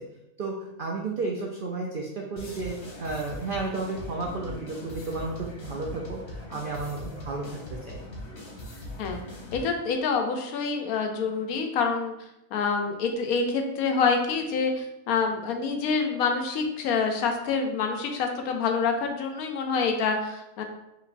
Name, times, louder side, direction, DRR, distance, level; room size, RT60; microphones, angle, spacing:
voice 1, 0.4-2.7 3.0-8.0, right 3 dB, 75° right, -1 dB, 0.4 m, -32 dB
sound 1, 2.4-9.7, left 1 dB, 70° left, 1.6 m, -41 dB
voice 2, 9.5-12.1 12.5-20.6, left 5 dB, 85° left, 4 dB, 1.1 m, -27 dB
5.2 x 3.1 x 2.5 m, 0.89 s
omnidirectional pair, 1.5 m